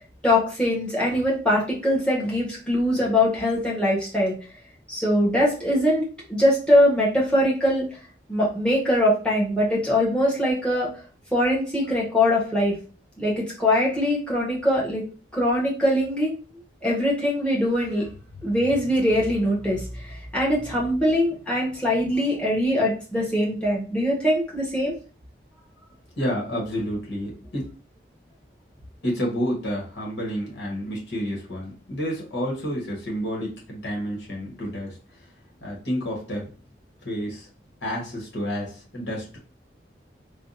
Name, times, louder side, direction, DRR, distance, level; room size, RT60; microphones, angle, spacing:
voice 1, 0.2-4.4 4.9-7.9 8.3-10.9 11.3-12.8 13.2-15.0 15.3-16.3 16.8-18.0 18.4-24.9, left 1 dB, 5° left, -5 dB, 1.0 m, -22 dB
voice 2, 26.2-27.6 29.0-34.9 35.6-36.5 37.0-37.5 37.8-39.4, equal, 75° left, -1 dB, 1.2 m, -29 dB
3.4 x 2.2 x 2.6 m, 0.37 s
head